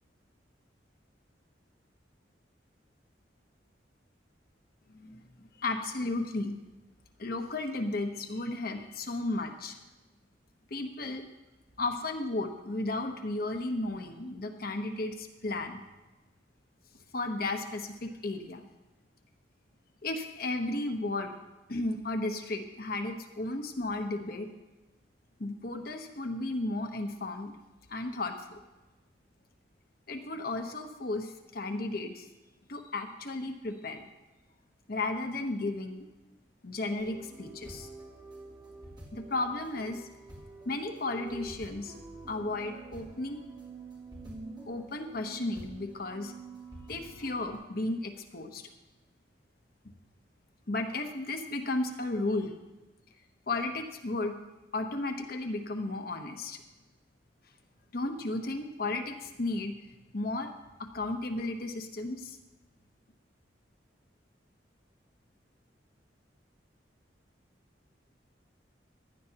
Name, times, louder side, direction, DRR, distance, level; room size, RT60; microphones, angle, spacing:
voice 1, 4.9-6.6 7.2-9.8 10.7-11.2 11.8-15.8 17.1-18.6 20.0-21.3 21.7-24.5 25.4-27.5 27.9-28.6 30.1-32.3 32.7-34.0 34.9-36.0 36.6-37.9 39.1-40.1 40.7-41.9 42.3-43.4 44.7-46.3 46.9-48.6 50.7-52.5 53.5-54.4 54.7-56.6 57.9-59.8 60.1-60.5 60.8-62.4, left 2 dB, 55° left, 5 dB, 0.9 m, -34 dB
sound 1, 37.0-47.6, right 3 dB, 25° right, 3.3 m, -47 dB
15.5 x 11.0 x 2.9 m, 1.1 s
head